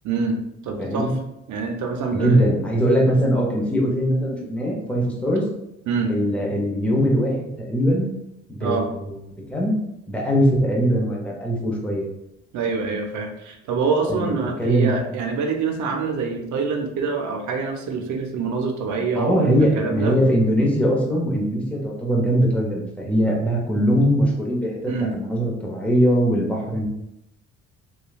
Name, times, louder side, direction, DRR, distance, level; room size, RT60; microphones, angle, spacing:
voice 1, 0.0-1.1 1.5-2.5 5.9-6.1 8.6-8.9 12.5-20.2 24.9-25.1, right 4 dB, 70° right, 4 dB, 0.6 m, -25 dB
voice 2, 0.8-1.1 2.1-5.5 6.1-8.1 8.5-9.2 9.5-9.8 10.1-12.1 14.1-14.2 14.6-14.9 19.1-26.9, equal, 5° left, -3 dB, 0.8 m, -21 dB
3.0 x 2.3 x 2.3 m, 0.84 s
cardioid pair, 90°, 30 cm